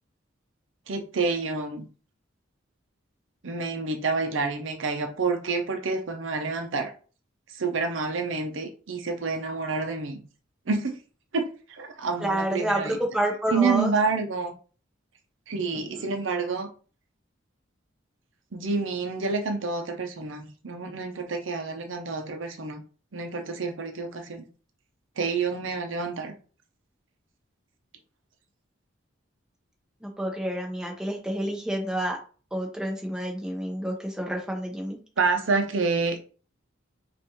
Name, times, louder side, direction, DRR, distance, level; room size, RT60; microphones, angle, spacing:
voice 1, 0.9-1.9 3.4-6.9 7.5-10.2 10.7-11.0 11.3-13.0 13.5-14.5 15.5-16.7 18.5-22.8 23.1-24.4 25.2-26.3 35.2-36.3, right 4 dB, 75° right, 0.7 m, -28 dB
voice 2, 12.2-13.9 15.7-16.1 30.0-32.2 32.5-35.0, right 1 dB, 5° right, 0.9 m, -29 dB
5.3 x 2.6 x 3.0 m
head